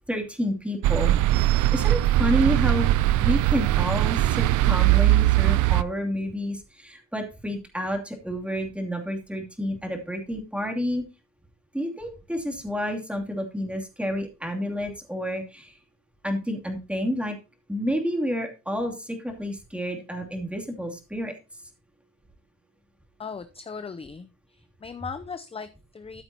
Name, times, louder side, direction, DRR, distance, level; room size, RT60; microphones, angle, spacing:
voice 1, 0.1-1.2 1.7-2.9 3.2-11.0 11.7-15.7 16.2-17.4 17.7-21.3, equal, 5° right, 2 dB, 2.7 m, -29 dB
sound 1, 0.8-5.8, right 15 dB, 80° right, 0.5 m, -20 dB
voice 2, 23.2-24.3 24.8-26.2, left 5 dB, 20° left, 11 dB, 0.6 m, -37 dB
13.5 x 7.7 x 2.8 m, 0.29 s
cardioid pair, 90°, 30 cm